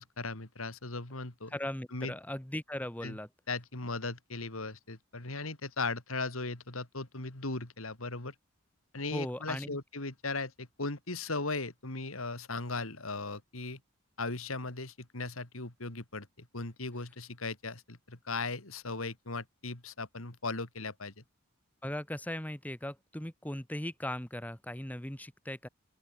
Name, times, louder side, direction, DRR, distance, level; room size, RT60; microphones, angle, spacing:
voice 1, 0.0-1.6 1.9-2.1 3.0-3.2 3.5-8.3 8.9-13.8 14.2-21.2, left 3 dB, 80° left, 3.1 m, -38 dB
voice 2, 1.5-3.3 9.1-9.8 21.8-25.7, left 1 dB, 5° left, 1.3 m, -38 dB
open air
head